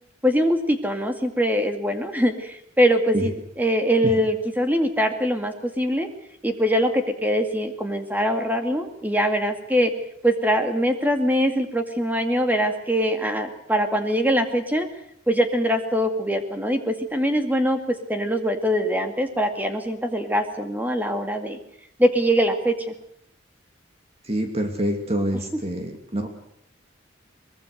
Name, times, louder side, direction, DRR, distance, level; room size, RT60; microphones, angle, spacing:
voice 1, 0.2-6.1 6.4-9.9 10.2-14.9 15.3-21.6 22.0-22.9, equal, 10° right, 6 dB, 2.2 m, -23 dB
voice 2, 24.2-26.3, equal, 30° right, 4 dB, 2.6 m, -26 dB
23.5 x 21.0 x 6.7 m, 0.75 s
head